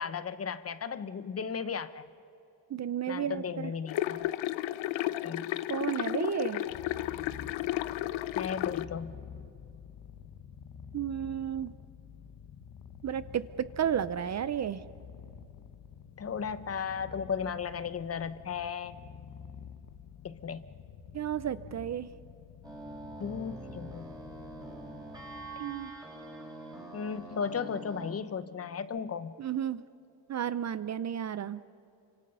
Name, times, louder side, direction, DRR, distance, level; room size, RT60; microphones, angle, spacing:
voice 1, 0.0-2.0 3.1-4.3 5.2-5.5 8.3-9.1 16.2-19.0 20.2-20.6 23.2-24.1 26.9-29.3, left 6 dB, 35° left, 14 dB, 0.8 m, -35 dB
voice 2, 2.7-3.4 5.7-6.6 10.9-11.7 13.0-14.8 21.1-22.1 25.6-25.9 29.4-29.8 30.3-31.6, right 9 dB, 40° right, 15 dB, 0.6 m, -32 dB
sound 1, 3.9-8.8, left 15 dB, 80° left, 0.8 m, -33 dB
Purr, 6.6-26.0, left 7 dB, 50° left, 1.3 m, -49 dB
sound 2, 22.6-28.1, right 2 dB, 10° right, 4.9 m, -45 dB
29.0 x 25.5 x 5.5 m, 2.6 s
cardioid pair, 120°, 44 cm